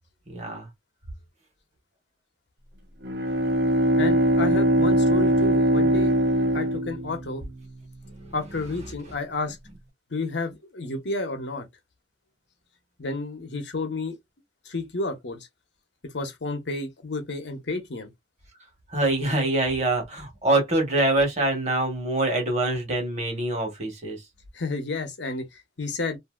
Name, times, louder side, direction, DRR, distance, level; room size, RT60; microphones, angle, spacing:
voice 1, 0.3-0.7 8.0-8.4 18.9-24.2, right 2 dB, 35° right, 1.3 m, -25 dB
Bowed string instrument, 3.0-7.6, right 1 dB, 60° right, 0.9 m, -21 dB
voice 2, 4.0-6.2 6.5-7.4 8.3-9.6 10.1-11.7 13.0-14.2 14.6-15.5 16.1-18.1 24.5-26.2, left 3 dB, 70° left, 0.9 m, -31 dB
2.7 x 2.6 x 2.4 m
head